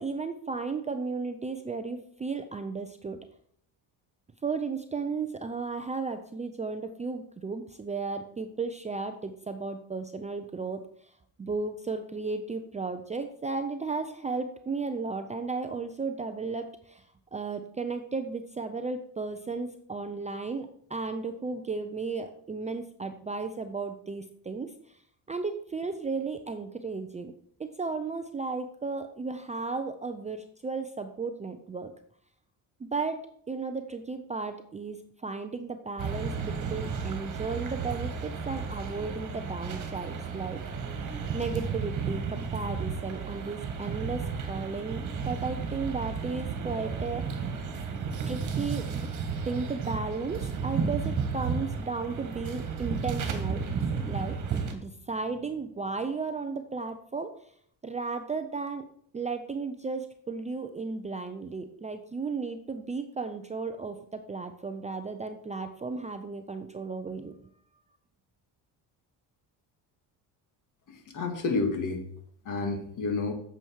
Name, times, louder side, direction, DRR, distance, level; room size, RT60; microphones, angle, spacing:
voice 1, 0.0-3.2 4.4-11.1 11.4-17.0 17.3-24.7 25.3-27.3 27.6-31.9 32.8-33.2 33.5-40.6 41.0-47.3 48.3-49.1 49.4-53.6 54.1-54.4 54.7-57.5 57.8-58.8 59.1-67.4, right 4 dB, 15° right, 7 dB, 0.5 m, -34 dB
sound 1, 36.0-54.7, right 5 dB, 45° right, 1.8 m, -33 dB
voice 2, 70.9-72.0 72.5-73.3, left 3 dB, 45° left, 5 dB, 2.0 m, -30 dB
9.0 x 7.1 x 4.7 m, 0.64 s
cardioid pair, 130°, 42 cm